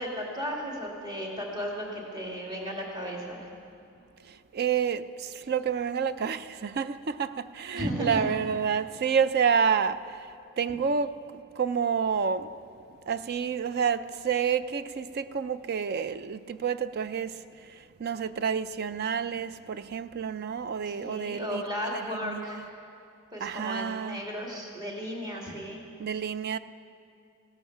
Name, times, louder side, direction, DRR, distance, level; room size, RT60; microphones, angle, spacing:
voice 1, 0.0-3.5 7.7-8.3 20.9-22.7 23.3-25.8, equal, 20° right, 2.1 m, -35 dB
voice 2, 4.3-10.3 10.6-12.5 13.1-17.4 18.0-22.7 23.4-24.2 26.0-26.6, right 6 dB, 45° right, 0.4 m, -29 dB
16.5 x 12.5 x 5.8 m
head